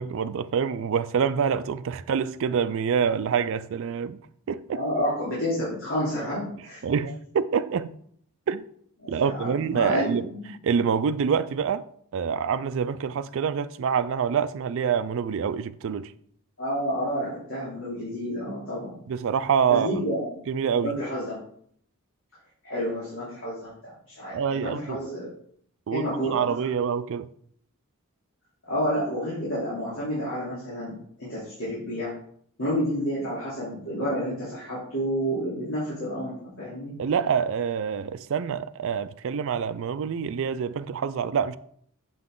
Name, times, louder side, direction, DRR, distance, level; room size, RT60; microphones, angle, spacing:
voice 1, 0.0-4.2 4.5-4.8 6.8-7.9 8.5-8.6 9.1-10.3 10.6-11.9 12.1-16.1 19.1-19.9 20.5-21.0 24.3-25.0 25.9-27.3 37.0-41.6, right 7 dB, 60° right, 0.3 m, -26 dB
voice 2, 4.7-6.8 9.0-10.5 16.6-18.9 19.7-20.2 20.8-21.4 22.6-25.3 25.9-26.4 28.7-32.1 32.6-36.9, equal, 55° left, 3.4 m, -30 dB
7.4 x 5.9 x 3.8 m
head